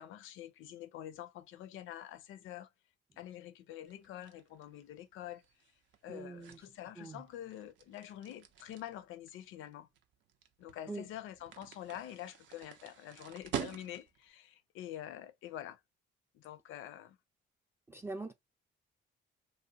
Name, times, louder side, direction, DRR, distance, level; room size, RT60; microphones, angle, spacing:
voice 1, 0.0-2.7 3.2-5.4 6.0-9.9 10.6-15.8 16.3-17.2, left 12 dB, 85° left, 0.4 m, -46 dB
sound 1, 3.9-14.3, right 9 dB, 70° right, 0.5 m, -47 dB
voice 2, 6.1-6.6 7.0-7.2 10.9-11.1 17.9-18.3, right 2 dB, 10° right, 0.3 m, -43 dB
2.7 x 2.0 x 2.7 m
cardioid pair, 90°, 20 cm